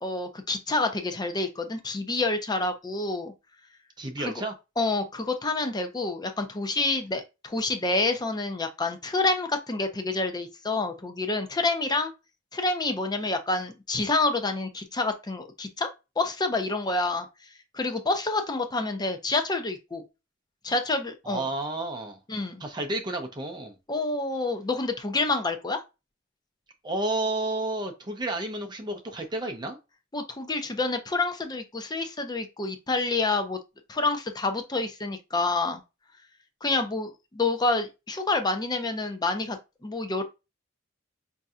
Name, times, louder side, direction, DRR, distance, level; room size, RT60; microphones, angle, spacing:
voice 1, 0.0-3.3 4.2-4.4 4.8-12.1 12.5-15.9 16.2-17.3 17.7-20.0 20.6-21.5 22.3-22.6 23.9-25.8 30.1-33.6 33.9-35.8 36.6-40.2, left 3 dB, 20° left, 0.6 m, -28 dB
voice 2, 4.0-4.5 21.3-22.2 22.6-23.8 26.8-29.8, right 2 dB, 25° right, 0.6 m, -31 dB
5.2 x 2.7 x 2.3 m
head